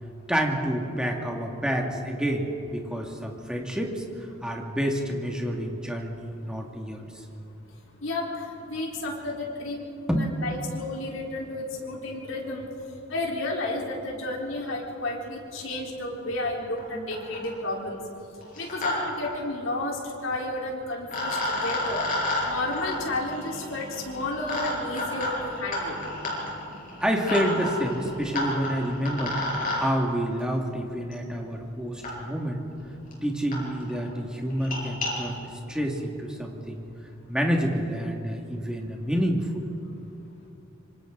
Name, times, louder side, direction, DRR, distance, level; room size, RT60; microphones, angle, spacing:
voice 1, 0.3-4.0 4.4-7.1 10.1-10.3 16.9-17.1 27.0-32.6 33.2-36.8 37.3-39.7, equal, 5° right, 0 dB, 2.1 m, -28 dB
voice 2, 8.0-9.8 10.2-12.7 13.1-18.0 18.6-22.1 22.4-26.0, left 2 dB, 80° left, -2 dB, 4.0 m, -32 dB
sound 1, 16.8-16.9 17.1-17.6 18.4-18.9 19.2-19.3 20.6-20.7 21.1-29.8 31.1-31.2 32.0-32.1 32.8-32.9 33.1-33.2 33.5-33.6 33.9-34.1 34.5-35.1, left 1 dB, 45° left, 6.2 m, -31 dB
26.0 x 26.0 x 3.9 m, 2.8 s
head